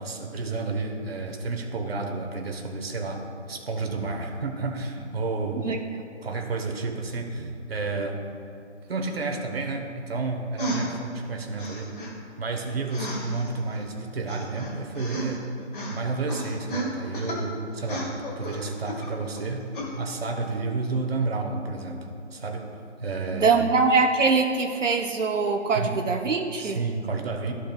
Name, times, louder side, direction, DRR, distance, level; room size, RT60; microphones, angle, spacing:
voice 1, 0.0-5.6 6.2-8.2 8.9-11.9 12.4-15.5 15.9-19.7 20.0-22.7 23.0-23.6 25.7-25.9 26.6-27.5, right 3 dB, 55° right, 3 dB, 1.1 m, -31 dB
sound 1, 10.6-11.0 11.6-12.1 12.9-13.8 14.3-15.5 15.7-16.0 16.3-17.4 17.8-19.4 19.7-19.9, right 1 dB, 45° left, 1.9 m, -33 dB
voice 2, 23.3-26.8, right 4 dB, 85° right, 3 dB, 0.8 m, -23 dB
14.0 x 5.3 x 2.3 m, 2.5 s
figure-of-eight pair, 160°, 37 cm